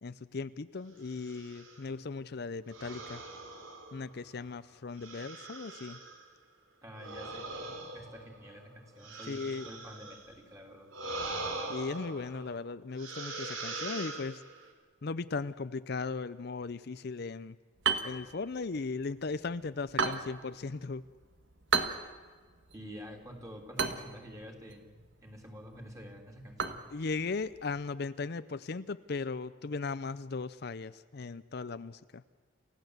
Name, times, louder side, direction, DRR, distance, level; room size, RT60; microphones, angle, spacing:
voice 1, 0.0-3.2 3.9-6.0 9.3-9.7 11.7-14.4 15.0-17.6 18.0-21.0 26.9-32.2, left 4 dB, 55° left, 13 dB, 0.6 m, -37 dB
sound 1, 1.1-1.8 2.7-4.3 5.0-6.2 6.9-10.3 10.9-12.6 13.0-14.7, right 2 dB, 85° right, 3.8 m, -42 dB
voice 2, 6.8-10.9 22.7-26.8, equal, 15° right, 2 dB, 3.1 m, -48 dB
sound 2, 17.8-27.9, right 5 dB, 65° right, 1.7 m, -37 dB
29.0 x 15.5 x 8.0 m, 1.5 s
head